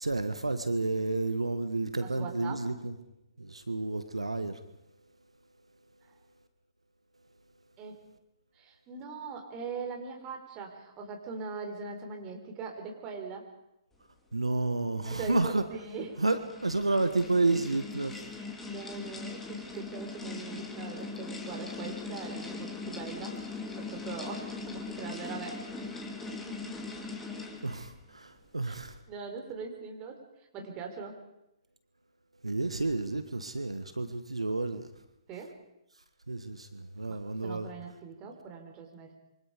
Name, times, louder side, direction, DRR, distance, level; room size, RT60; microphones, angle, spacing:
voice 1, 0.0-2.9 3.4-4.6 14.3-15.6 16.2-18.2 27.6-29.0 32.4-34.9 36.3-37.7, right 2 dB, 85° right, 10 dB, 1.4 m, -30 dB
voice 2, 2.0-2.6 7.8-8.0 8.5-13.5 15.0-16.2 18.3-25.6 26.3-26.9 28.7-28.8 29.1-30.2 30.5-31.2 34.0-34.1 35.3-35.6 37.1-39.1, right 5 dB, 25° right, 3 dB, 4.5 m, -41 dB
sound 1, 15.7-27.9, left 3 dB, 10° left, 2.7 m, -40 dB
26.5 x 24.5 x 5.1 m, 0.89 s
figure-of-eight pair, 125°, 3 cm